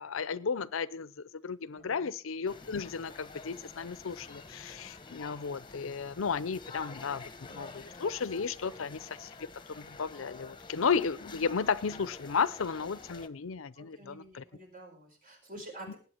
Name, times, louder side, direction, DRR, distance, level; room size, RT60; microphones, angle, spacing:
voice 1, 0.0-9.3 9.7-14.4 15.9-16.0, left 5 dB, 90° left, 0.6 m, -34 dB
voice 2, 1.7-2.1 8.6-8.7 13.8-16.0, right 1 dB, 45° right, 4.6 m, -49 dB
sound 1, 2.5-13.3, left 3 dB, 25° left, 1.0 m, -48 dB
19.0 x 8.3 x 4.5 m
head